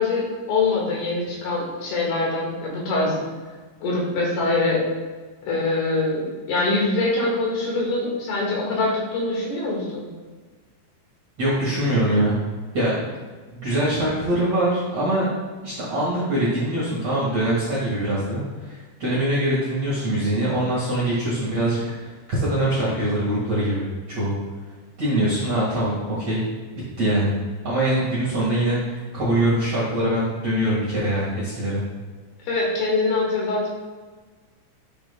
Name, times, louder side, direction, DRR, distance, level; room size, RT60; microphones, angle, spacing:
voice 1, 0.0-3.2 3.8-4.8 5.4-10.1 32.4-33.7, left 3 dB, 65° left, -3 dB, 3.2 m, -24 dB
voice 2, 11.4-12.3 12.7-13.0 13.6-15.3 15.6-24.4 25.0-26.4 26.7-27.3 27.6-31.8, right 1 dB, 70° right, -8 dB, 1.5 m, -23 dB
12.0 x 6.9 x 2.2 m, 1.4 s
omnidirectional pair, 5.8 m